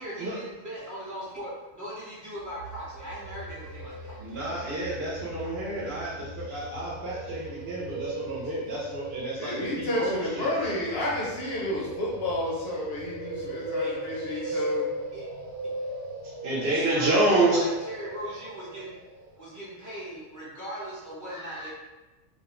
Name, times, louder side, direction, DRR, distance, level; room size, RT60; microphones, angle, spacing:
voice 1, 0.0-4.2 13.8-14.0 14.3-14.6 15.1-15.2 16.6-18.9 19.4-21.7, equal, 20° right, -10 dB, 0.7 m, -39 dB
sound 1, 2.4-19.4, right 1 dB, 85° right, 1.0 m, -38 dB
voice 2, 4.2-10.5 16.2-17.7 21.3-21.7, right 2 dB, 60° right, -5 dB, 0.8 m, -29 dB
voice 3, 9.4-14.9, left 1 dB, 65° left, -5 dB, 0.7 m, -31 dB
2.4 x 2.2 x 2.9 m, 1.1 s
omnidirectional pair, 1.3 m